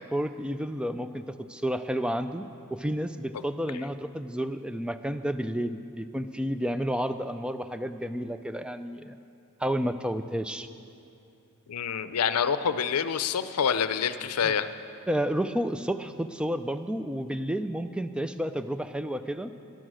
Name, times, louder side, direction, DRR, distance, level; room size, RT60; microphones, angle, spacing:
voice 1, 0.1-1.2 1.5-2.4 2.7-9.2 9.6-10.7 14.4-14.5 15.1-19.5, equal, 5° right, 10 dB, 0.3 m, -31 dB
voice 2, 11.7-14.7, left 7 dB, 85° left, 12 dB, 0.5 m, -27 dB
13.0 x 11.5 x 6.2 m, 2.6 s
head